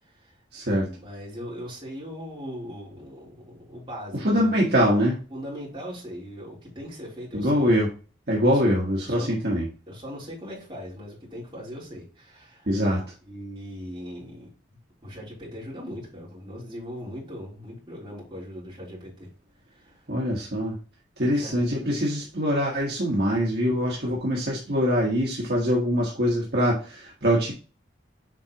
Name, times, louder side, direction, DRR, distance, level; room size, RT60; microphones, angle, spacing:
voice 1, 0.0-0.4 0.7-4.5 5.3-7.7 8.5-8.6 9.0-9.4 9.9-12.7 13.2-19.3 19.7-20.0 21.3-21.5 21.9-22.2, equal, 25° right, -7 dB, 3.6 m, -40 dB
voice 2, 0.5-0.9 4.1-5.2 7.3-7.9 8.3-9.6 12.7-13.0 20.1-20.8 21.2-27.5, equal, 55° right, -3 dB, 1.4 m, -23 dB
7.5 x 4.7 x 3.0 m, 0.36 s
head